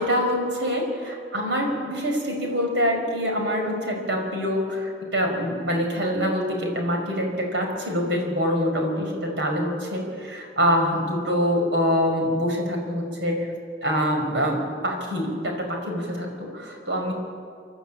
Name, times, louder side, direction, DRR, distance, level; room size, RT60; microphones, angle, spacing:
voice 1, 0.0-13.5 13.8-17.1, equal, 70° right, 1 dB, 5.4 m, -25 dB
29.0 x 11.5 x 9.0 m, 2.3 s
head